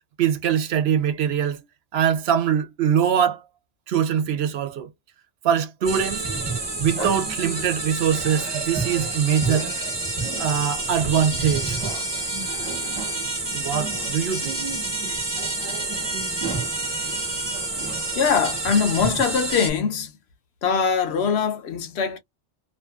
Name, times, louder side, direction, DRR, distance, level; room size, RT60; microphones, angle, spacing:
voice 1, 0.2-1.6 1.9-3.4 3.9-4.9 5.4-6.3 6.8-9.7 10.4-11.8 13.5-14.6, right 8 dB, 65° right, 0.8 m, -23 dB
sound 1, 5.8-19.7, right 3 dB, 25° right, 0.9 m, -28 dB
voice 2, 18.2-20.1 20.6-22.2, left 6 dB, 65° left, 0.9 m, -22 dB
2.5 x 2.5 x 2.3 m
omnidirectional pair, 1.2 m